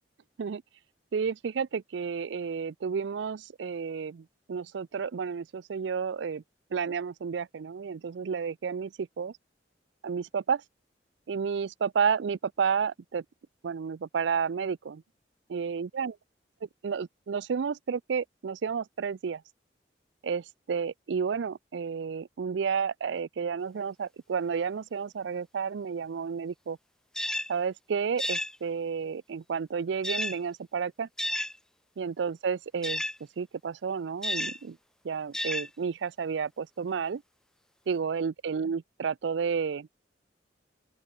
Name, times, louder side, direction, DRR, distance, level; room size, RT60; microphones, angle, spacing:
voice 1, 1.1-6.4 6.7-9.3 10.0-10.6 11.3-13.2 13.6-15.0 15.5-16.1 16.8-19.4 20.2-26.8 27.5-31.1 32.0-33.0 33.4-34.8 35.0-37.2 37.9-39.9, right 6 dB, 75° right, 0.4 m, -31 dB
sound 1, 27.1-27.5 28.2-28.6 30.0-30.4 31.2-31.6 32.8-33.2 34.2-34.6 35.3-35.7, left 1 dB, 5° left, 0.5 m, -31 dB
open air
head